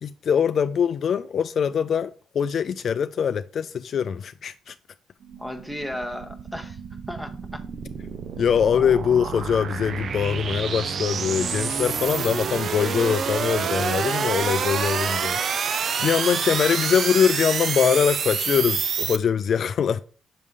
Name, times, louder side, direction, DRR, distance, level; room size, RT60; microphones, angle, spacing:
voice 1, 0.0-4.7 8.4-15.4 15.7-20.0, left 7 dB, 55° left, 0.3 m, -23 dB
sound 1, 5.2-19.2, right 6 dB, 55° right, 0.5 m, -28 dB
voice 2, 5.4-6.8 7.1-7.6, left 1 dB, ahead, 1.0 m, -34 dB
6.6 x 3.6 x 4.9 m
cardioid pair, 90°, 0 cm